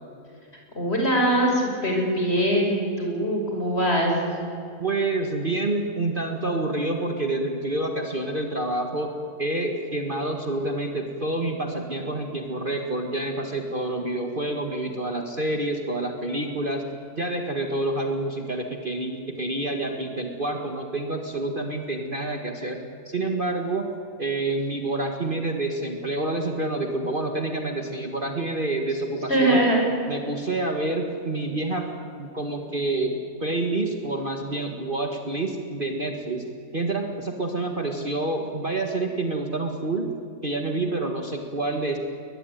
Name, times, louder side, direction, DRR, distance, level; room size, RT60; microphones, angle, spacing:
voice 1, 0.8-4.1 29.3-29.9, right 1 dB, 35° left, 0 dB, 5.9 m, -22 dB
voice 2, 4.8-9.1 9.4-16.9 17.2-23.9 24.2-29.6 30.1-31.9 32.2-33.1 33.4-36.5 36.7-40.1 40.4-42.0, right 2 dB, 30° right, 3 dB, 1.9 m, -28 dB
22.5 x 20.5 x 9.3 m, 2.5 s
omnidirectional pair, 1.8 m